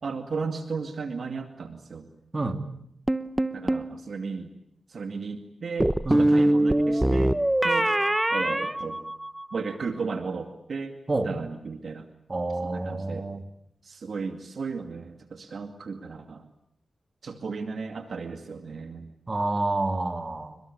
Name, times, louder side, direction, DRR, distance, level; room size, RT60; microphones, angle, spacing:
voice 1, 0.0-2.1 3.5-4.5 4.9-7.4 7.6-7.9 8.3-9.0 9.5-11.0 11.2-12.1 12.6-13.3 13.8-16.5 17.2-19.1, right 4 dB, 70° right, 6 dB, 2.3 m, -34 dB
sound 1, 3.1-3.9 5.8-9.6, right 1 dB, 15° right, 1.1 m, -23 dB
voice 2, 12.3-13.4 19.3-20.6, right 2 dB, 40° right, 7 dB, 3.4 m, -28 dB
29.0 x 22.5 x 8.6 m, 0.72 s
cardioid pair, 50°, 0 cm